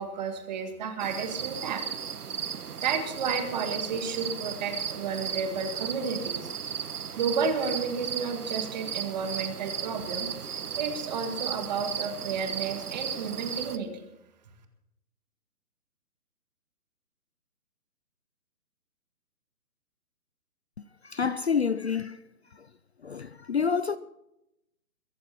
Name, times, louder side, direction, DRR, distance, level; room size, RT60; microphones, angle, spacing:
voice 1, 0.0-1.8 2.8-6.5 7.2-13.9, right 5 dB, 30° right, 1.9 m, -32 dB
sound 1, 1.0-13.8, right 7 dB, 75° right, 1.4 m, -35 dB
voice 2, 21.0-22.2 22.5-22.7 23.0-24.0, left 6 dB, 45° left, 0.5 m, -28 dB
23.0 x 11.0 x 4.3 m
hypercardioid pair, 165°, 46 cm